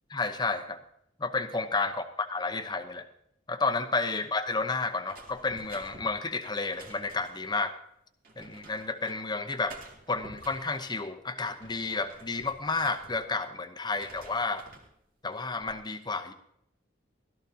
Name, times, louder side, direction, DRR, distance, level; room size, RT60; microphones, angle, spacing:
voice 1, 0.1-0.8 1.2-3.1 3.5-7.7 8.4-9.8 10.1-14.6 15.2-16.3, left 3 dB, 25° left, 8 dB, 0.8 m, -31 dB
sound 1, 5.0-7.5 8.2-9.2 9.6-10.8 11.3-13.5 13.8-14.9 15.4-15.8, right 2 dB, 50° right, 2.4 m, -51 dB
16.0 x 13.0 x 2.8 m, 0.74 s
head